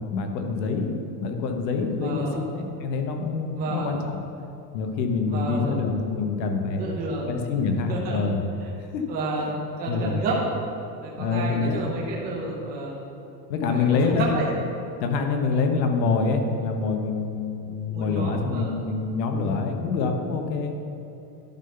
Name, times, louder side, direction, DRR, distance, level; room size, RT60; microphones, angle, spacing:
voice 1, 0.0-2.3 2.5-4.2 4.7-6.9 7.3-8.4 8.9-9.1 9.9-10.2 11.2-11.9 13.5-14.3 15.0-20.7, left 4 dB, 85° left, 4 dB, 1.2 m, -26 dB
voice 2, 1.9-2.4 3.5-4.0 5.3-5.7 6.7-7.3 7.9-8.3 9.1-10.4 11.0-13.0 13.7-14.5 17.9-18.8, right 2 dB, 20° right, -3 dB, 0.7 m, -31 dB
11.0 x 3.9 x 5.5 m, 2.7 s
supercardioid pair, 175°, 50 cm